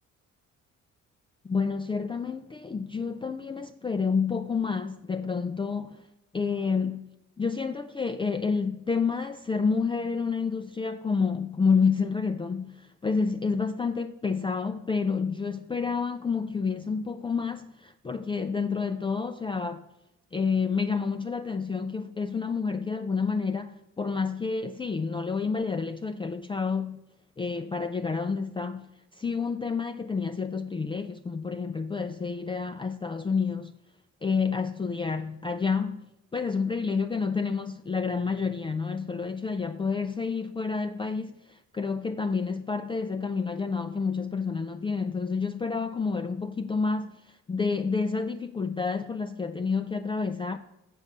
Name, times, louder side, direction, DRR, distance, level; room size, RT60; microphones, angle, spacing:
voice 1, 1.4-6.1 6.3-7.1 7.4-19.8 20.3-27.0 27.4-33.7 34.2-50.6, left 5 dB, 15° left, 0.4 m, -29 dB
7.1 x 6.2 x 6.6 m
cardioid pair, 90°, 30 cm